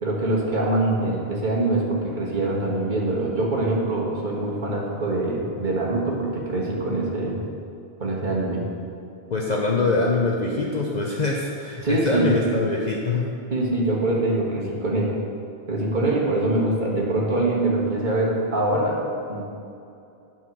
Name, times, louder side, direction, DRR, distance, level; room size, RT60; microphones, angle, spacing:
voice 1, 0.0-7.4 8.0-8.6 11.8-12.3 13.5-15.2 15.7-19.0 19.3-19.5, right 2 dB, 50° right, -4 dB, 1.8 m, -24 dB
voice 2, 9.3-13.2, left 3 dB, 45° left, -2 dB, 0.8 m, -23 dB
10.5 x 4.6 x 6.1 m, 2.6 s
omnidirectional pair, 1.1 m